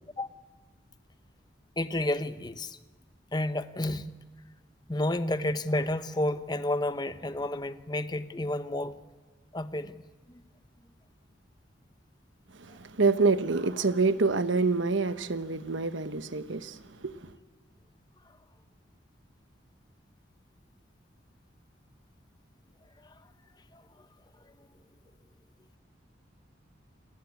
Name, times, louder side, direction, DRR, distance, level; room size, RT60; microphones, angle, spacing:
voice 1, 1.8-2.8 3.3-4.1 4.9-9.0 9.5-10.0 10.3-10.4 23.0-23.1 23.7-23.8, left 1 dB, 20° left, 0.9 m, -31 dB
voice 2, 12.5-17.3, right 4 dB, 80° right, 1.1 m, -27 dB
29.0 x 19.0 x 8.5 m
head